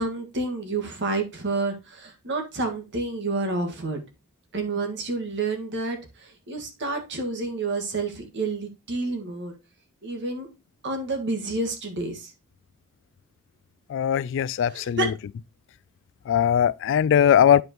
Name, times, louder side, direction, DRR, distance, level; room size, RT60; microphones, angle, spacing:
voice 1, 0.0-4.0 4.5-9.5 10.0-10.5 10.8-12.3 14.6-15.1, right 3 dB, 55° right, 1.7 m, -29 dB
voice 2, 13.9-15.0 16.3-17.6, left 9 dB, 60° left, 0.3 m, -20 dB
9.3 x 5.0 x 2.9 m
head